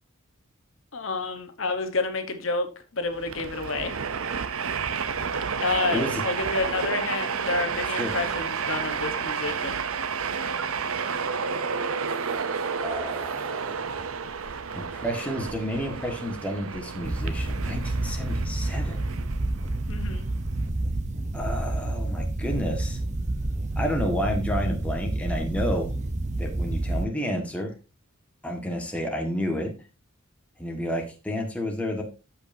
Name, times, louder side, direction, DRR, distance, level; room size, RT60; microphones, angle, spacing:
voice 1, 0.9-2.7 2.9-3.9 5.6-9.8 19.9-20.3, left 3 dB, 65° left, 7 dB, 1.2 m, -29 dB
Train, 3.1-20.7, right 6 dB, 80° right, 0.7 m, -31 dB
voice 2, 12.8-13.9 14.7-19.0 21.3-23.0 23.8-25.9 26.4-27.7 28.4-29.7 30.6-32.0, equal, 5° left, 1 dB, 1.7 m, -30 dB
sound 1, 17.0-27.0, right 2 dB, 35° right, 0.8 m, -29 dB
14.0 x 5.6 x 2.7 m, 0.30 s
head